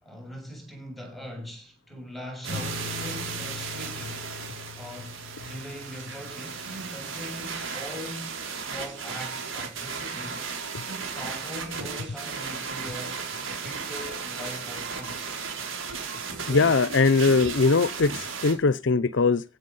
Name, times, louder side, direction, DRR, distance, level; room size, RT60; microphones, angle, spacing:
voice 1, 0.0-4.3 4.8-10.5 10.9-13.2 13.6-15.4, equal, ahead, 7.1 m, -41 dB
sound 1, 2.4-9.1, left 4 dB, 35° right, 4.8 m, -42 dB
sound 2, 2.4-18.5, right 5 dB, 90° right, 5.0 m, -35 dB
sound 3, 5.8-17.0, right 5 dB, 65° right, 5.5 m, -49 dB
voice 2, 16.5-19.4, left 4 dB, 65° left, 0.7 m, -21 dB
16.0 x 8.4 x 5.5 m
head